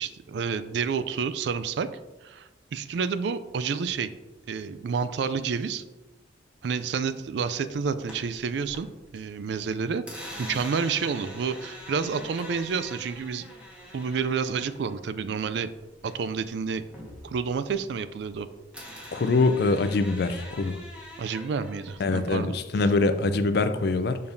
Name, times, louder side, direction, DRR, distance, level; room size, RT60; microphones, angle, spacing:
voice 1, 0.0-1.9 2.2-4.1 4.5-5.8 6.6-8.9 9.1-10.0 10.4-13.5 13.9-15.7 16.0-16.8 17.2-18.5 21.2-22.6, right 5 dB, 65° right, 13 dB, 0.3 m, -29 dB
sound 1, 8.1-9.2 9.5-16.4 16.7-18.4 18.7-22.3, equal, 5° right, 1.4 m, -44 dB
voice 2, 19.1-20.8 22.0-24.2, left 3 dB, 60° left, 10 dB, 0.4 m, -24 dB
6.9 x 5.2 x 2.7 m, 1.1 s
head